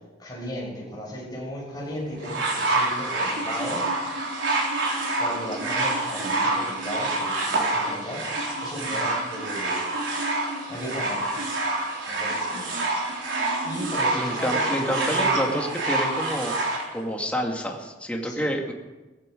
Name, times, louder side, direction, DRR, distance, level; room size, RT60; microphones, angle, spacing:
voice 1, 0.2-3.9 4.5-4.6 5.1-8.2 8.6-9.9 10.7-11.5 12.1-12.7 13.6-15.6 18.2-18.5, equal, 20° left, -3 dB, 6.1 m, -35 dB
sound 1, 2.2-16.8 17.7-17.8, right 2 dB, 80° right, 3.9 m, -27 dB
voice 2, 14.1-16.6 16.9-18.7, equal, 5° left, 1 dB, 2.1 m, -28 dB
18.0 x 15.0 x 5.2 m, 1.2 s
head